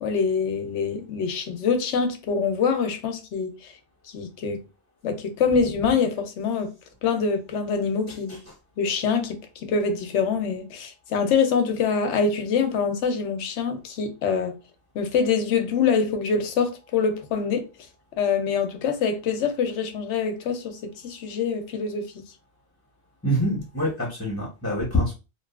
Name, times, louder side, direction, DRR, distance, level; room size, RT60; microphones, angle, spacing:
voice 1, 0.0-3.7 4.1-4.6 5.0-6.7 7.0-8.4 8.8-14.6 14.9-17.7 18.2-22.2, left 5 dB, 90° left, 0.9 m, -25 dB
voice 2, 8.1-8.4 23.2-25.1, equal, 15° left, 0.7 m, -26 dB
2.6 x 2.3 x 2.3 m
omnidirectional pair, 1.2 m